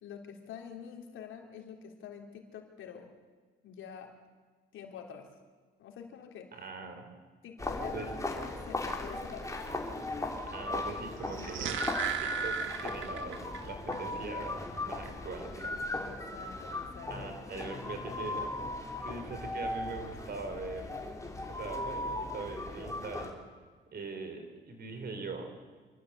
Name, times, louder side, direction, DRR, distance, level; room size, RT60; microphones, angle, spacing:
voice 1, 0.0-3.1 3.6-4.2 4.7-5.3 5.8-6.5 7.4-9.6 15.9-17.1 18.0-18.2, left 7 dB, 80° left, 2 dB, 3.5 m, -47 dB
voice 2, 6.5-7.1 7.9-8.1 10.5-11.8 12.2-15.9 17.1-18.5 19.0-21.0 21.5-23.4 23.9-25.5, right 4 dB, 50° right, 6 dB, 4.4 m, -42 dB
sound 1, 7.6-23.3, left 2 dB, 15° left, 3.6 m, -37 dB
sound 2, 11.2-13.6 13.9-14.0, right 10 dB, 80° right, 1.7 m, -36 dB
26.5 x 14.0 x 8.5 m, 1.4 s
cardioid pair, 90°, 20 cm